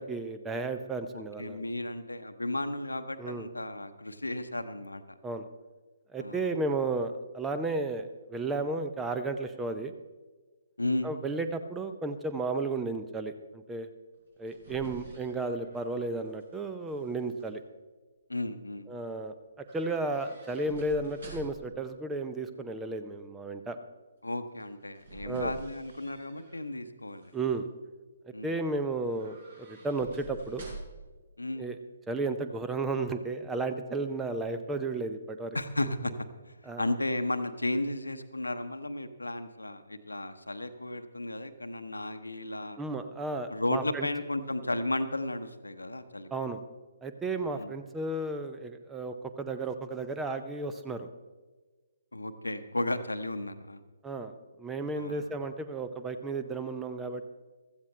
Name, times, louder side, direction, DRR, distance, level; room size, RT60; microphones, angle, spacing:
voice 1, 0.0-1.6 3.2-3.5 5.2-5.4 6.1-9.9 11.0-13.9 14.4-17.6 18.9-19.3 19.7-23.8 25.2-25.5 27.3-27.7 28.4-29.4 29.7-30.7 31.6-31.8 32.1-35.6 36.7-36.9 42.8-44.1 46.3-46.6 47.0-51.1 54.0-54.3 54.6-57.3, right 3 dB, 10° right, 8 dB, 0.6 m, -33 dB
voice 2, 1.1-5.2 6.2-6.5 10.8-11.1 18.3-18.9 24.2-27.3 28.3-28.6 31.4-31.7 35.5-42.8 43.5-46.5 47.6-47.7 52.1-53.8 55.0-55.2, left 1 dB, 75° left, 10 dB, 0.9 m, -34 dB
sound 1, 14.2-16.6 16.9-17.5 19.7-21.8 24.5-26.7 27.1-27.6 29.0-31.1 31.4-31.5, right 3 dB, 50° right, 5.0 m, -48 dB
15.5 x 14.0 x 3.3 m, 1.3 s
figure-of-eight pair, 135°, 0 cm